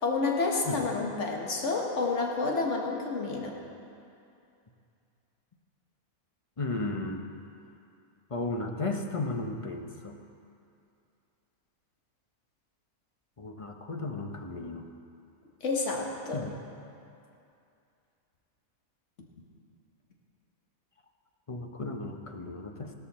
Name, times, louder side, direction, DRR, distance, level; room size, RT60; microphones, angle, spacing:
voice 1, 0.0-3.6 15.6-16.4, left 3 dB, 55° left, 0 dB, 1.7 m, -29 dB
voice 2, 6.6-7.2 8.3-10.2 13.4-14.9 16.3-16.5 21.5-22.9, left 2 dB, 30° left, 4 dB, 0.6 m, -34 dB
15.5 x 13.5 x 4.2 m, 2.6 s
omnidirectional pair, 1.5 m